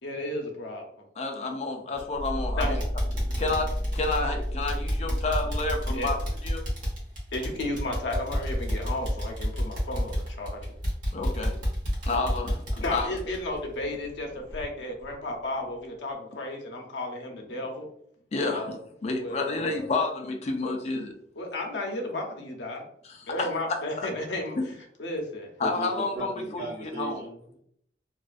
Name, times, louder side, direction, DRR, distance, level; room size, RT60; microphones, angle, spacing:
voice 1, 0.0-1.0 2.6-2.8 5.9-6.1 7.3-10.6 11.5-11.6 12.8-17.9 18.5-18.8 19.1-19.9 21.4-22.9 23.3-24.6 25.0-25.5, left 1 dB, 90° left, 1 dB, 0.6 m, -33 dB
voice 2, 1.2-2.8 3.4-6.2 6.4-6.6 11.1-11.5 12.0-12.6 12.9-13.1 18.3-18.8 19.0-21.1 23.1-23.5 24.0-24.1 25.6-26.6 27.0-27.2, left 3 dB, 40° left, 4 dB, 0.4 m, -29 dB
sound 1, 1.9-2.3 2.6-14.2 14.5-14.6 15.1-15.2, equal, 50° right, 0.9 m, -31 dB
sound 2, 2.1-7.0, equal, 20° right, 0.8 m, -32 dB
voice 3, 25.6-27.6, right 2 dB, 65° right, -4 dB, 1.4 m, -37 dB
2.4 x 2.3 x 2.4 m, 0.69 s
head